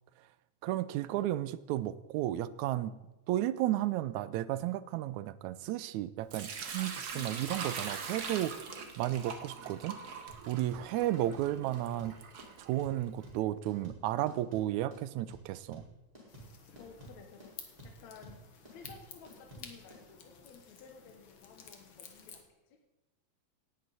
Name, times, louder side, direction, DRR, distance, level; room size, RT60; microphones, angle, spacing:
voice 1, 0.6-3.0 3.3-8.7 9.0-12.1 12.6-15.9, right 13 dB, 80° right, 16 dB, 1.9 m, -33 dB
Sink (filling or washing) / Liquid, 6.3-13.2, right 5 dB, 60° right, 1.0 m, -42 dB
voice 2, 7.1-8.9 10.9-11.1 11.5-11.7 16.8-18.4 18.7-22.4 22.7-22.8, left 6 dB, 70° left, 4 dB, 2.4 m, -55 dB
sound 1, 10.3-20.0, right 1 dB, 10° right, 4.2 m, -52 dB
sound 2, 16.3-22.4, left 6 dB, 50° left, 1.7 m, -53 dB
17.5 x 11.0 x 4.1 m, 1.0 s
omnidirectional pair, 3.4 m